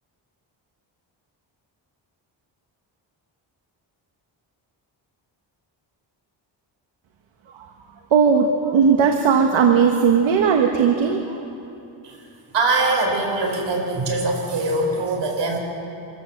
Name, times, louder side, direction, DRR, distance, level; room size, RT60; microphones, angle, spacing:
voice 1, 8.1-11.4, right 6 dB, 80° right, 3 dB, 1.5 m, -17 dB
voice 2, 12.5-15.6, right 2 dB, 65° right, 1 dB, 4.9 m, -22 dB
25.5 x 14.5 x 7.4 m, 2.9 s
wide cardioid pair, 125°, 46 cm